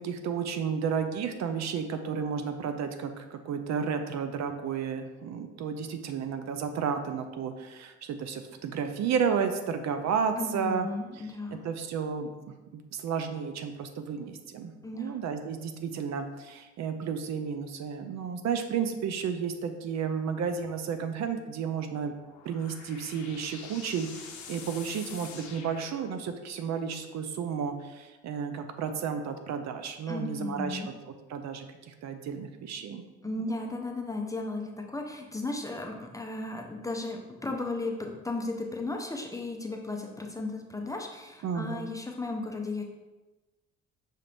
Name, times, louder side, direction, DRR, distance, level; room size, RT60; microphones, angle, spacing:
voice 1, 0.0-10.9 11.5-22.1 22.4-30.9 31.3-33.0 41.4-41.9, right 6 dB, 65° right, 7 dB, 0.5 m, -32 dB
voice 2, 10.4-11.6 14.8-15.2 30.1-30.9 33.2-42.8, left 2 dB, 10° left, 2 dB, 0.5 m, -35 dB
Analog noise sweep, 22.0-26.5, left 6 dB, 70° left, 0.6 m, -46 dB
5.6 x 2.5 x 3.4 m, 1.1 s
cardioid pair, 90°, 30 cm